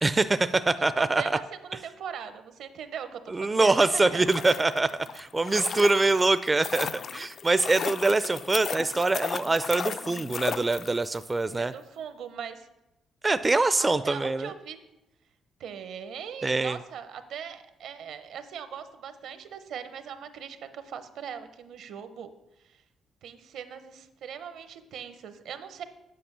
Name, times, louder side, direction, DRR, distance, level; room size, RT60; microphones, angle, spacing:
voice 1, 0.0-1.4 3.3-4.9 5.1-11.7 13.2-14.5 16.4-16.8, right 3 dB, 20° right, 13 dB, 0.4 m, -24 dB
voice 2, 1.0-4.5 11.5-12.7 13.8-14.8 15.6-22.3 22.6-22.8 23.2-25.8, right 8 dB, 75° right, 11 dB, 0.9 m, -40 dB
sound 1, 4.1-11.2 11.5-11.6, left 7 dB, 50° left, 0.3 m, -35 dB
8.6 x 5.3 x 6.8 m, 0.92 s
cardioid pair, 90°, 0 cm